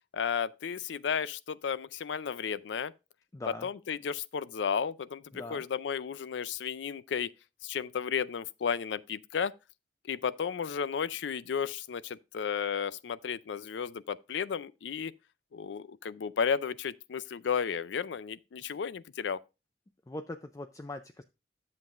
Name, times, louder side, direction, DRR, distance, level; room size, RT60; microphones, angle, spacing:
voice 1, 0.1-2.9 3.6-7.3 7.6-9.5 10.0-15.1 15.5-19.4, left 7 dB, 85° left, 0.4 m, -33 dB
voice 2, 3.3-3.7 5.3-5.6 20.1-21.2, left 2 dB, 20° left, 0.4 m, -41 dB
10.5 x 7.4 x 2.4 m
head